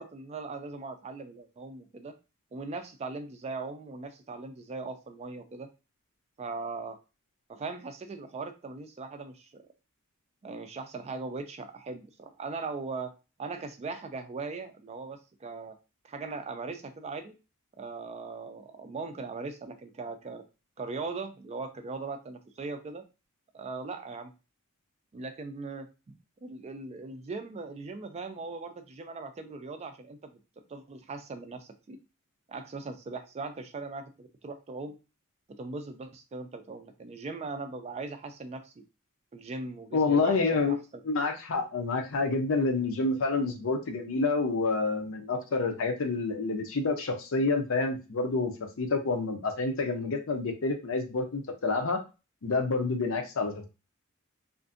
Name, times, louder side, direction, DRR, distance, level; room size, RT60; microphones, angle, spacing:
voice 1, 0.0-2.2 2.5-5.7 6.4-7.0 7.5-9.6 10.4-13.1 13.4-15.8 16.0-17.3 17.8-20.4 20.8-23.0 23.5-24.3 25.1-25.9 26.4-30.3 30.7-32.0 32.5-35.0 35.6-38.8 39.3-41.0, right 3 dB, 30° right, 7 dB, 0.3 m, -39 dB
voice 2, 39.9-40.8 41.0-48.5 48.8-52.0 52.4-53.7, left 3 dB, 65° left, 5 dB, 0.6 m, -28 dB
2.5 x 2.4 x 2.4 m, 0.30 s
head